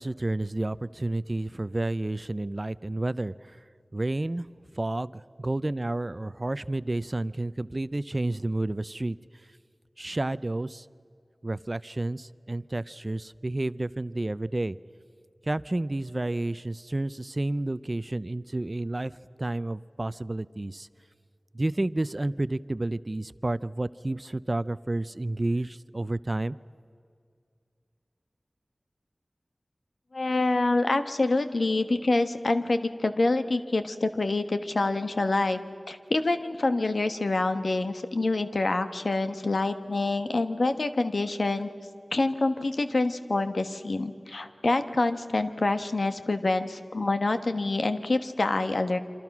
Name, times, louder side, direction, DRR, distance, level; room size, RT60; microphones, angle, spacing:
voice 1, 0.0-3.6 3.9-4.5 4.8-9.2 10.0-10.9 11.4-14.8 15.4-19.1 19.4-20.9 21.5-26.6, right 2 dB, 40° right, 16 dB, 0.5 m, -30 dB
voice 2, 30.1-35.6 35.9-41.7 42.1-49.0, left 2 dB, 80° left, 8 dB, 1.3 m, -26 dB
27.5 x 26.0 x 6.1 m, 2.3 s
wide cardioid pair, 55°, 0 cm